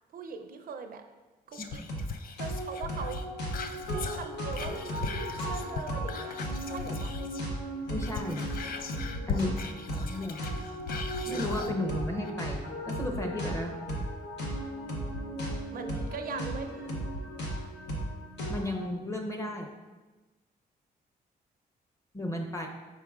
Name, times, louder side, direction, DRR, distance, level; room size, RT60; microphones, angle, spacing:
voice 1, 0.1-1.0 1.5-1.8 2.4-3.2 3.9-6.4 6.6-7.1 9.3-9.6 15.7-16.9, right 5 dB, 60° right, 6 dB, 0.4 m, -40 dB
Whispering, 1.5-7.5 7.8-11.8 12.2-12.3, left 5 dB, 60° left, 0.4 m, -39 dB
sound 1, 1.9-2.1 2.4-18.9, equal, 85° left, 0.9 m, -35 dB
voice 2, 7.9-8.4 9.3-9.5 10.0-10.5 11.3-13.7 18.5-19.7 22.1-22.7, left 1 dB, 15° left, 2 dB, 0.6 m, -34 dB
4.8 x 4.7 x 2.3 m, 1.2 s
cardioid pair, 95°, 17 cm